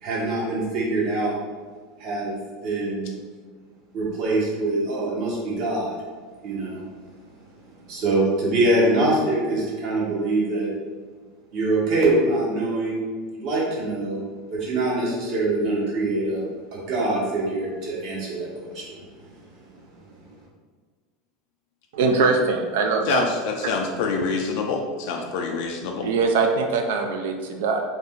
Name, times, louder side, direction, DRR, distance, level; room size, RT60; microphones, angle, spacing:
voice 1, 0.0-1.3 2.0-2.4 2.6-3.1 3.9-6.0 6.4-6.8 7.9-10.7 11.5-13.0 13.3-14.2 14.5-16.4 16.7-18.9, right 2 dB, 55° right, -5 dB, 1.0 m, -24 dB
voice 2, 21.9-23.2 26.0-27.8, right 4 dB, 80° right, 4 dB, 0.3 m, -22 dB
voice 3, 23.1-26.1, left 4 dB, 70° left, 2 dB, 0.3 m, -26 dB
2.5 x 2.1 x 3.5 m, 1.5 s
supercardioid pair, 130°, 0 cm